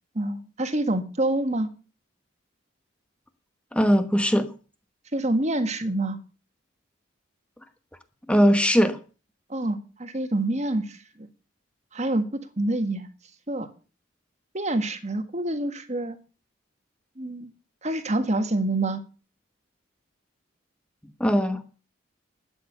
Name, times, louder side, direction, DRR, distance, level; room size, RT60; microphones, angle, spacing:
voice 1, 0.1-1.7 5.1-6.2 9.5-11.3 11.9-13.1 13.5-13.7 14.5-16.2 17.2-17.5 17.8-19.0, right 1 dB, 35° right, 10 dB, 1.6 m, -27 dB
voice 2, 3.7-4.5 8.3-9.0 21.2-21.6, equal, 5° left, 9 dB, 1.1 m, -20 dB
12.5 x 9.2 x 6.9 m, 0.36 s
head